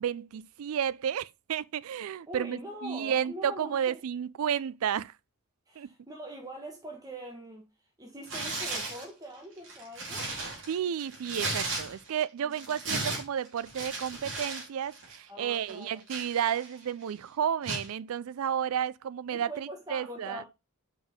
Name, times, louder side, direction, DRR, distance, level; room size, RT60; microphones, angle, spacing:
voice 1, 0.0-5.1 5.8-5.9 10.7-20.4, right 8 dB, 75° right, 0.4 m, -32 dB
voice 2, 2.3-4.0 5.7-10.3 12.4-12.5 15.3-16.0 19.3-20.5, right 1 dB, 15° right, 1.2 m, -43 dB
Tearing, 8.2-9.1 9.6-12.2 12.5-14.7 14.9-15.2 15.7-16.8 17.6-17.9, right 2 dB, 60° right, 2.7 m, -35 dB
5.3 x 5.1 x 5.1 m
head